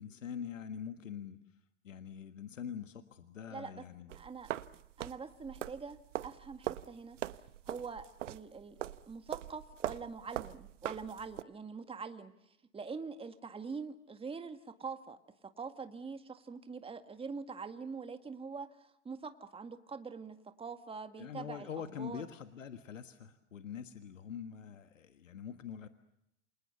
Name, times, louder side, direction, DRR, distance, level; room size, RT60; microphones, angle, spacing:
voice 1, 0.0-1.4 1.8-4.1 21.2-25.9, left 8 dB, 85° left, 9 dB, 1.7 m, -44 dB
voice 2, 3.5-3.8 4.2-4.5 5.0-7.2 7.7-22.3, right 5 dB, 15° right, 8 dB, 1.9 m, -44 dB
sound 1, 4.1-11.4, right 13 dB, 75° right, 1.0 m, -42 dB
29.0 x 27.0 x 6.9 m, 0.82 s
hypercardioid pair, 90°, 37 cm